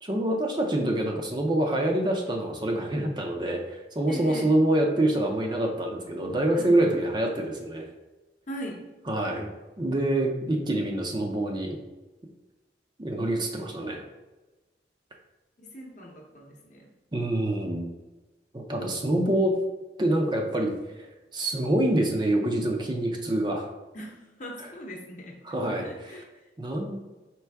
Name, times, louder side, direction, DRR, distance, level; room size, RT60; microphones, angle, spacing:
voice 1, 0.0-7.9 9.1-9.5 9.8-11.8 13.0-14.0 17.1-17.9 18.5-19.6 20.0-20.7 21.3-23.7 25.4-25.9 26.6-27.0, right 1 dB, 25° right, 1 dB, 0.5 m, -26 dB
voice 2, 4.1-4.6 6.5-6.7 8.5-8.8 15.6-16.9 23.9-25.4 25.8-26.2, right 1 dB, 45° left, 0 dB, 0.8 m, -40 dB
4.6 x 3.4 x 3.4 m, 1.1 s
head